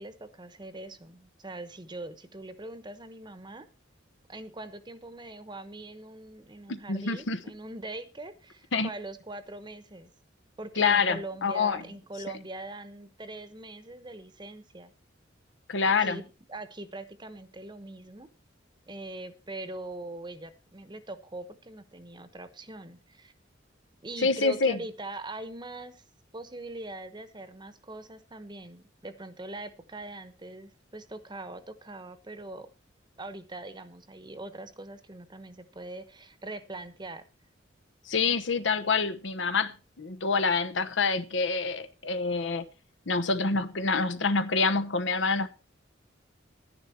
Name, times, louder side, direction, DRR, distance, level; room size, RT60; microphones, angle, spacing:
voice 1, 0.0-3.7 4.3-10.1 10.6-14.9 15.8-18.3 18.9-23.3 24.0-26.0 26.3-32.7 33.2-37.2, right 2 dB, 25° right, 1.0 m, -42 dB
voice 2, 6.7-7.4 8.7-8.9 10.8-11.8 15.7-16.2 24.2-24.8 38.1-42.6 43.1-45.5, left 4 dB, 75° left, 1.0 m, -26 dB
11.0 x 10.0 x 4.4 m
head